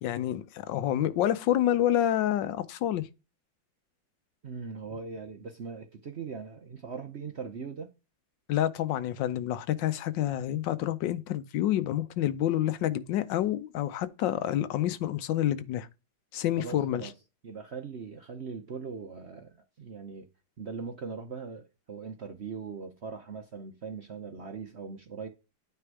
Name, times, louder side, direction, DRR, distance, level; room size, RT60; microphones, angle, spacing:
voice 1, 0.0-3.1 8.5-15.9 16.3-17.1, left 12 dB, 70° left, 1.3 m, -28 dB
voice 2, 4.4-7.9 16.6-17.1 17.4-20.3 20.6-25.3, right 5 dB, 60° right, 0.7 m, -40 dB
9.3 x 3.5 x 4.7 m
omnidirectional pair, 2.1 m